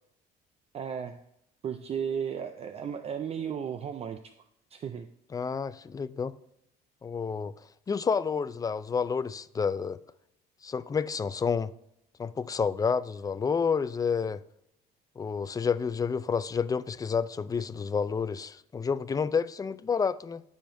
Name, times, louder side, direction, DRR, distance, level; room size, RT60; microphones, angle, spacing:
voice 1, 0.7-1.2 1.6-4.3 4.7-5.1, right 7 dB, 40° right, 0.5 m, -34 dB
voice 2, 5.3-6.3 7.0-7.5 7.9-10.0 10.6-11.7 12.2-14.4 15.2-20.4, left 6 dB, 20° left, 0.4 m, -29 dB
14.5 x 5.1 x 2.6 m
cardioid pair, 110°, 17 cm